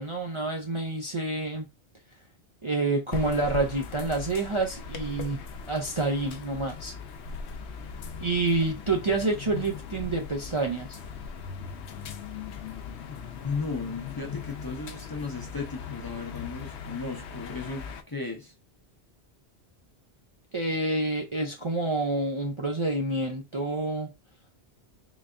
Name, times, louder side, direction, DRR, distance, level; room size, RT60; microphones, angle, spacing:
voice 1, 0.0-1.7 2.6-5.4 5.7-6.9 8.2-11.0 20.5-24.1, right 2 dB, 35° right, 0.5 m, -28 dB
sound 1, 3.1-18.0, left 6 dB, 85° left, 0.9 m, -39 dB
voice 2, 13.4-18.5, left 4 dB, 25° left, 0.6 m, -35 dB
3.9 x 3.3 x 2.4 m
omnidirectional pair, 1.1 m